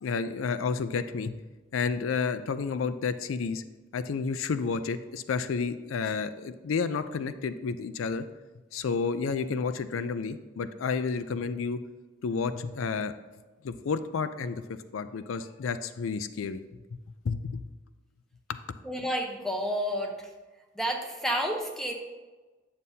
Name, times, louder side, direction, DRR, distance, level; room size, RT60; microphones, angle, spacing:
voice 1, 0.0-1.3 1.7-3.6 3.9-8.2 8.7-11.8 12.2-13.1 13.6-16.6 17.2-17.6, left 5 dB, 90° left, 12 dB, 0.4 m, -31 dB
voice 2, 18.8-20.3 20.8-21.9, equal, ahead, 2 dB, 0.8 m, -30 dB
9.2 x 6.9 x 2.7 m, 1.2 s
head